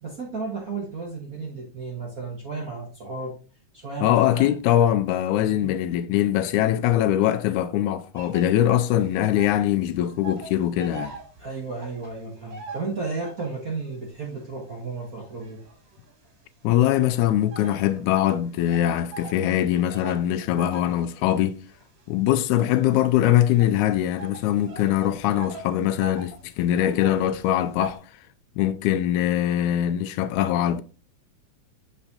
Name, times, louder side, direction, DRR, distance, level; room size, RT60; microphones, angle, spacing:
voice 1, 0.0-3.3 3.7-4.5 5.4-5.7 11.4-15.6, right 4 dB, 45° right, 1.2 m, -33 dB
voice 2, 4.0-11.2 16.6-21.6 22.1-28.0 28.6-30.8, left 12 dB, 90° left, 2.0 m, -22 dB
sound 1, 8.1-9.7 10.0-13.7 14.2-16.3 16.9-28.0, right 4 dB, 65° right, 3.0 m, -42 dB
7.1 x 5.2 x 2.8 m
omnidirectional pair, 3.4 m